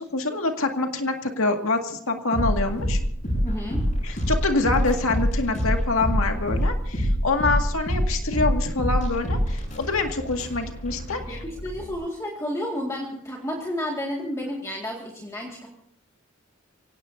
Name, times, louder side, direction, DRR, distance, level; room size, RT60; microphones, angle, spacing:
voice 1, 0.0-3.0 4.0-11.4, left 3 dB, 80° left, 4 dB, 2.0 m, -26 dB
sound 1, 2.3-11.9, equal, 40° left, 7.9 m, -26 dB
voice 2, 3.4-3.9 11.3-15.7, left 1 dB, 15° left, -2 dB, 2.0 m, -31 dB
25.5 x 17.0 x 2.7 m, 0.68 s
head